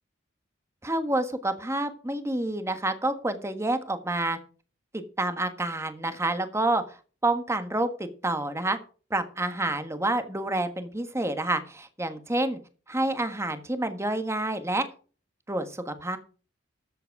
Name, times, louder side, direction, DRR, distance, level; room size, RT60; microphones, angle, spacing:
voice 1, 0.8-4.4 4.9-7.0 7.2-8.8 9.1-12.6 12.9-14.9 15.5-16.2, right 2 dB, 15° right, 8 dB, 1.5 m, -28 dB
14.0 x 8.0 x 4.8 m, 0.38 s
head